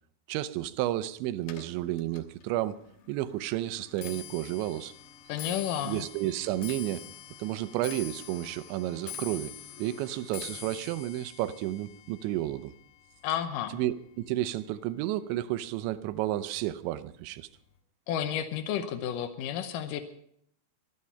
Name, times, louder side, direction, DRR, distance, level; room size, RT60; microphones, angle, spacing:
voice 1, 0.3-2.8 3.1-4.9 5.8-7.0 7.4-9.5 9.8-12.7 13.7-17.5, right 14 dB, 85° right, 15 dB, 3.0 m, -31 dB
Clock, 1.4-14.8 15.1-15.6 16.4-16.5 16.8-17.2 17.4-17.5, left 10 dB, 65° left, 2.8 m, -46 dB
voice 2, 5.3-6.0 13.2-13.8 18.1-20.0, left 10 dB, 90° left, 9 dB, 1.8 m, -31 dB
23.5 x 8.9 x 5.7 m, 0.69 s
omnidirectional pair, 5.2 m